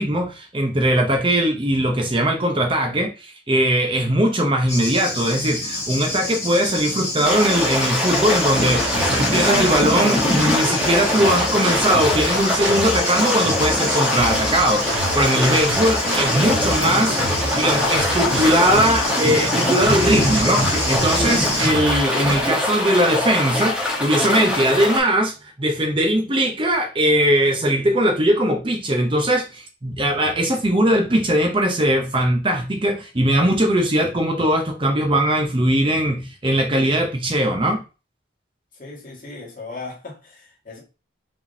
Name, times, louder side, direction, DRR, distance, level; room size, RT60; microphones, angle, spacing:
voice 1, 0.0-37.8, right 1 dB, 25° right, 0.6 m, -20 dB
Thunder, 4.7-21.7, left 1 dB, 15° left, 1.6 m, -26 dB
sound 1, 7.2-25.0, left 1 dB, 5° right, 1.1 m, -23 dB
sound 2, 8.6-22.5, right 2 dB, 80° right, 0.9 m, -29 dB
voice 2, 15.5-15.8 38.8-40.8, left 3 dB, 45° left, 1.9 m, -37 dB
4.8 x 3.7 x 2.7 m
head